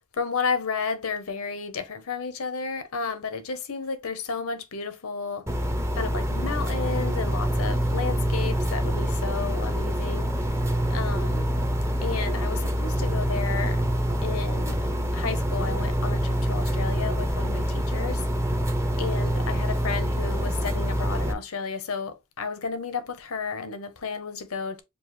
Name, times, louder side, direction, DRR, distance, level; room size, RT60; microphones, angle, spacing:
voice 1, 0.1-5.4 5.9-10.3 10.9-11.5 12.0-13.8 14.2-14.8 15.1-18.2 19.0-24.8, left 5 dB, 70° left, 0.9 m, -32 dB
sound 1, 5.5-21.3, equal, 15° right, 0.7 m, -26 dB
7.1 x 2.4 x 3.1 m
head